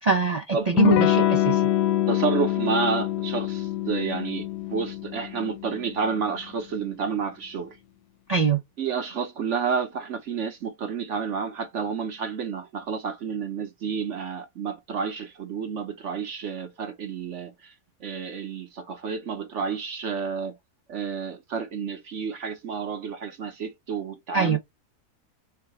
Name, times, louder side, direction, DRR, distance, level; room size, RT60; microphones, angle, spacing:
voice 1, 0.0-1.7 8.3-8.6 24.3-24.6, right 5 dB, 75° right, 0.3 m, -23 dB
Electric guitar / Strum, 0.8-6.1, left 13 dB, 85° left, 1.2 m, -25 dB
voice 2, 2.1-7.8 8.8-17.7 18.0-20.6 20.9-24.6, right 5 dB, 55° right, 0.9 m, -30 dB
4.6 x 2.2 x 4.6 m
omnidirectional pair, 1.7 m